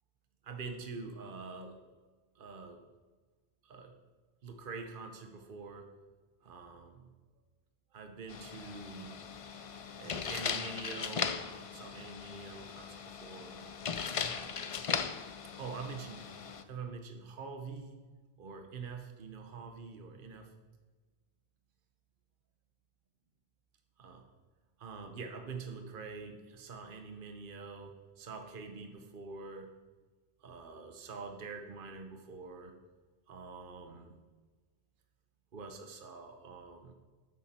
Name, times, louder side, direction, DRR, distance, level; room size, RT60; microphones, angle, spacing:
voice 1, 0.4-1.8 2.4-2.8 3.6-3.9 4.4-5.9 6.4-7.1 7.9-9.1 10.0-13.6 14.2-14.8 15.6-18.1 18.4-20.5 24.0-24.2 24.8-29.7 30.4-32.7 33.3-34.2 35.5-36.9, right 4 dB, 55° right, 5 dB, 1.1 m, -45 dB
sound 1, 8.3-16.6, left 6 dB, 45° left, 0.4 m, -38 dB
12.5 x 7.1 x 4.4 m, 1.3 s
omnidirectional pair, 1.1 m